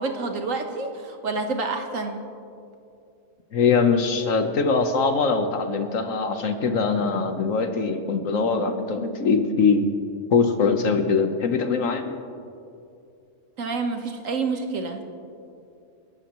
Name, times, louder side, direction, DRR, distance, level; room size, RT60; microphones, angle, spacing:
voice 1, 0.0-2.2 13.6-15.0, right 3 dB, 80° right, 5 dB, 1.7 m, -28 dB
voice 2, 3.5-9.9 10.3-12.1, left 4 dB, 80° left, 7 dB, 1.5 m, -22 dB
29.0 x 12.5 x 3.1 m, 2.6 s
omnidirectional pair, 1.3 m